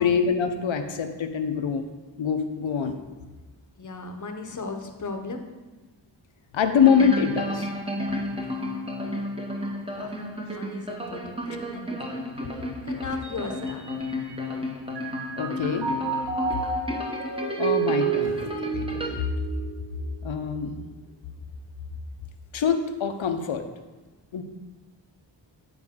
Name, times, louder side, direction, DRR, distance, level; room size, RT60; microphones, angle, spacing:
voice 1, 0.0-1.8 2.2-3.0 6.5-7.7 15.4-15.9 17.6-19.3 20.2-20.8 22.5-23.6 24.3-24.4, left 6 dB, 90° left, 7 dB, 0.8 m, -24 dB
voice 2, 3.8-5.4 9.9-11.9 12.5-13.9, left 3 dB, 40° left, 4 dB, 0.8 m, -37 dB
sound 1, 6.7-19.1, left 1 dB, 10° right, 0.8 m, -33 dB
Mallet percussion, 13.2-14.6 14.9-20.4, right 6 dB, 60° right, 0.9 m, -30 dB
9.4 x 4.9 x 3.6 m, 1.2 s
wide cardioid pair, 130°, 45 cm